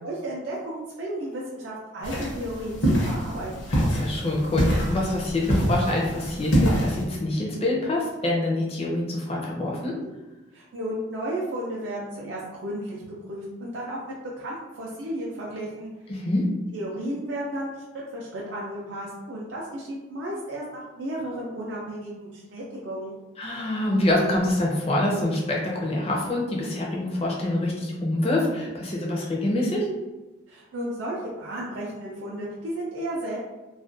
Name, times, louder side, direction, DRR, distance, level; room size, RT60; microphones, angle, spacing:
voice 1, 0.0-3.8 10.5-15.9 16.7-17.7 18.1-23.2 30.5-33.4, right 1 dB, 60° right, -5 dB, 0.4 m, -33 dB
sound 1, 2.0-7.0, equal, 65° left, 0.7 m, -25 dB
voice 2, 3.7-10.0 16.1-16.5 23.4-29.9, left 1 dB, 30° left, -2 dB, 0.5 m, -26 dB
2.3 x 2.1 x 2.5 m, 1.1 s
head